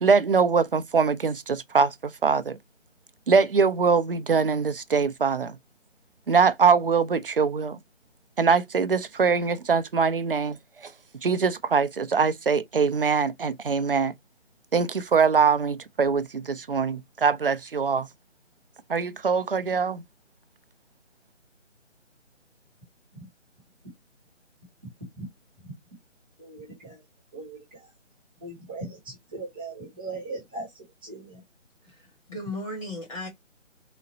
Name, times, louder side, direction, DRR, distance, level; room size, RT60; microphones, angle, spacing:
voice 1, 0.0-1.9 2.2-2.6 3.3-5.6 6.3-7.8 8.4-10.9 11.2-14.1 14.7-18.1 18.9-20.0, right 5 dB, 50° right, 0.5 m, -23 dB
voice 2, 26.4-26.9 27.3-27.6 28.4-28.9 29.3-30.7 31.0-31.3, right 3 dB, 10° right, 0.8 m, -38 dB
voice 3, 31.9-33.3, left 1 dB, 25° left, 1.3 m, -36 dB
3.9 x 2.1 x 4.0 m
figure-of-eight pair, 160°, 38 cm